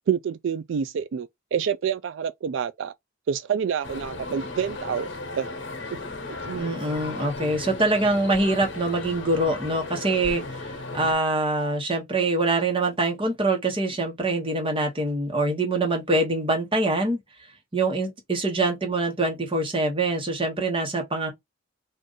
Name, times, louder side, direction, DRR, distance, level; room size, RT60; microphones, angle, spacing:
voice 1, 0.1-2.9 3.3-5.1 5.3-5.5 6.4-6.7, right 7 dB, 70° right, 0.3 m, -27 dB
sound 1, 3.8-11.1, left 2 dB, 70° left, 1.0 m, -36 dB
voice 2, 6.5-17.2 17.7-21.3, right 2 dB, 25° right, 1.1 m, -24 dB
3.6 x 2.5 x 3.9 m
head